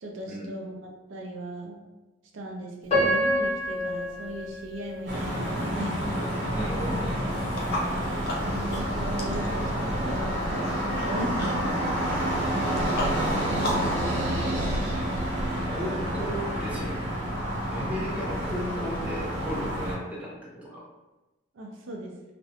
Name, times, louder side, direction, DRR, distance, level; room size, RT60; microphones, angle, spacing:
voice 1, 0.0-1.8 2.3-6.2 8.4-11.7 12.5-13.3 21.5-22.1, right 1 dB, 80° right, 1 dB, 0.4 m, -37 dB
Piano, 2.9-5.9 6.5-6.6 7.2-7.5, equal, 30° left, 0.9 m, -28 dB
sound 1, 5.1-19.9, equal, 60° right, 0.8 m, -29 dB
voice 2, 6.5-7.3 14.9-15.1 15.6-17.0 17.7-20.8, equal, 5° right, -6 dB, 0.5 m, -35 dB
sound 2, 7.5-13.9, left 1 dB, 55° left, 0.5 m, -36 dB
2.4 x 2.1 x 2.7 m, 1.1 s
head